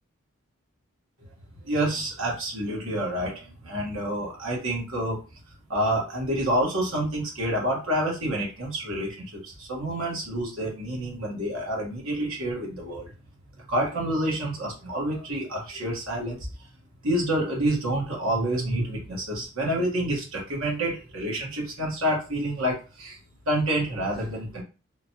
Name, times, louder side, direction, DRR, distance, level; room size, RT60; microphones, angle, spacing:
voice 1, 1.6-5.2 5.7-13.1 13.6-16.5 17.0-23.2 23.4-24.6, right 1 dB, 85° right, -2 dB, 1.5 m, -28 dB
3.7 x 2.3 x 2.9 m, 0.33 s
head